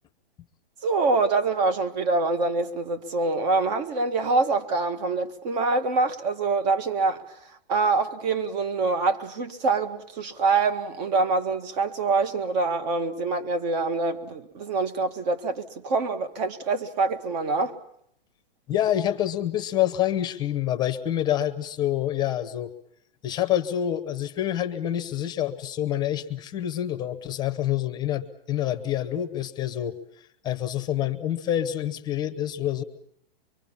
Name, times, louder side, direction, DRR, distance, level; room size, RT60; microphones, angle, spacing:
voice 1, 0.8-17.7, right 3 dB, 45° right, 1.8 m, -25 dB
voice 2, 18.7-22.7 23.2-32.8, left 11 dB, 15° left, 0.9 m, -27 dB
24.5 x 23.5 x 7.2 m
hypercardioid pair, 160°, 30 cm